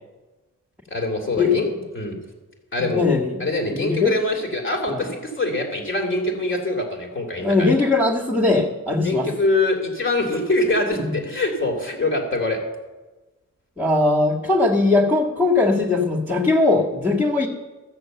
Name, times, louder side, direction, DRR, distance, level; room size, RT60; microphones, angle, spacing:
voice 1, 0.9-2.2 2.7-3.0 3.4-7.7 9.0-12.6, left 2 dB, 35° left, 1 dB, 2.7 m, -24 dB
voice 2, 2.8-3.4 3.8-4.1 4.9-5.0 7.4-9.3 10.9-11.1 13.8-17.5, left 3 dB, 5° right, -5 dB, 1.8 m, -20 dB
14.5 x 6.8 x 7.9 m, 1.2 s
wide cardioid pair, 100°, 33 cm